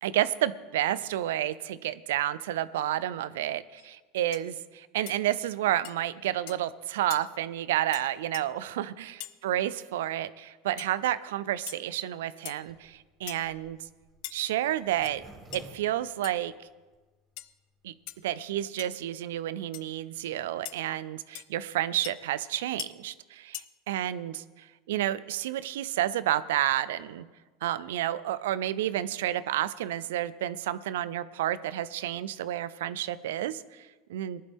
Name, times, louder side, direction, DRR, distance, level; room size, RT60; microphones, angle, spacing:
voice 1, 0.0-13.8 14.3-15.2 15.5-16.5 17.8-17.9 18.2-27.3 27.6-34.4, right 12 dB, 85° right, 16 dB, 0.5 m, -30 dB
sound 1, 3.8-3.9 4.3-4.5 5.1-5.2 5.8-6.0 6.5-6.6 7.1-7.2 7.9-8.1 8.3-8.4 9.2-9.4 10.8-10.9 11.7-11.8 12.5-12.7 13.3-13.5 14.2-14.4 14.9-15.1 15.5-15.6 16.2-16.3 17.4-17.5 18.1-18.2 18.8-19.0 19.7-19.8 20.7-20.8 21.4-21.5 22.0-22.1 22.8-22.9 23.5-23.7, left 17 dB, 65° left, 0.5 m, -41 dB
Zipper (clothing), 12.6-16.9 17.4-17.5 17.7-17.8 18.0-18.4, right 1 dB, 25° right, 3.1 m, -53 dB
18.5 x 11.5 x 3.6 m, 1.3 s
supercardioid pair, 120°, 0 cm